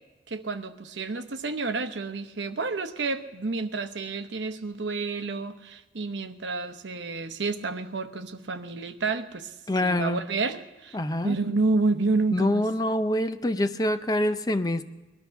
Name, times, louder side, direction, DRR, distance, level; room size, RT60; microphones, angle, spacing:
voice 1, 0.3-9.6 9.8-11.0 11.2-12.6, right 3 dB, 75° right, 9 dB, 0.9 m, -29 dB
voice 2, 9.7-10.2 10.9-11.4 12.3-14.8, left 1 dB, 20° left, 11 dB, 0.6 m, -25 dB
20.0 x 12.5 x 5.8 m, 1.2 s
head